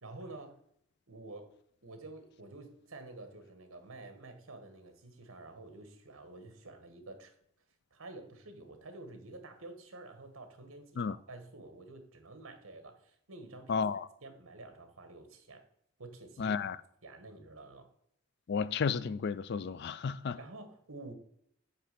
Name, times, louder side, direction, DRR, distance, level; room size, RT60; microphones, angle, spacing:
voice 1, 0.0-0.6 1.1-1.5 1.8-7.3 7.9-13.9 14.2-15.6 16.0-16.6 17.0-17.9 20.4-21.1, right 2 dB, 80° right, 1.4 m, -49 dB
voice 2, 13.7-14.0 16.4-16.8 18.5-20.4, left 5 dB, 50° left, 0.3 m, -32 dB
8.7 x 3.3 x 6.6 m
head